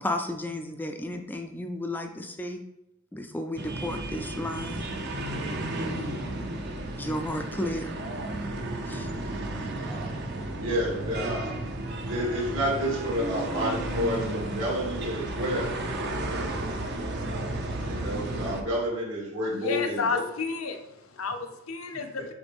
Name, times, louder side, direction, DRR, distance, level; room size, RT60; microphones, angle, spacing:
voice 1, 0.0-2.6 3.1-4.9 7.0-8.0 8.9-9.1, left 1 dB, 10° left, 5 dB, 0.4 m, -33 dB
sound 1, 3.6-18.6, right 1 dB, 55° right, 0.7 m, -33 dB
voice 2, 9.7-10.1 10.6-11.5 12.0-15.8 17.8-20.2, equal, 75° right, -4 dB, 2.5 m, -30 dB
voice 3, 19.5-22.3, left 4 dB, 90° left, 6 dB, 0.7 m, -31 dB
7.1 x 4.4 x 3.5 m, 0.84 s
head